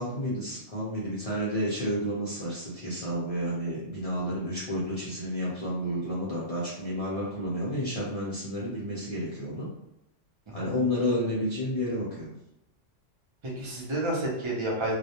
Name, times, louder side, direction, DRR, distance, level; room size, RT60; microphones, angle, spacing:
voice 1, 0.0-9.7 10.5-12.3, equal, 45° left, -8 dB, 0.4 m, -31 dB
voice 2, 10.5-10.9 13.4-14.9, right 1 dB, 30° right, -3 dB, 0.5 m, -31 dB
2.3 x 2.1 x 2.8 m, 0.85 s
omnidirectional pair, 1.3 m